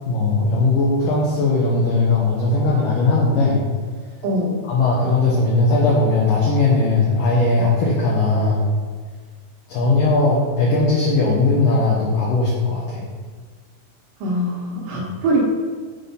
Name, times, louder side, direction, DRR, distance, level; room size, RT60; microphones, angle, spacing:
voice 1, 0.1-3.6 4.6-8.7 9.7-13.0, left 3 dB, 75° left, -4 dB, 2.0 m, -18 dB
voice 2, 4.2-4.6 14.2-15.4, right 1 dB, 70° right, -4 dB, 2.1 m, -22 dB
7.4 x 4.2 x 5.2 m, 1.5 s
omnidirectional pair, 5.3 m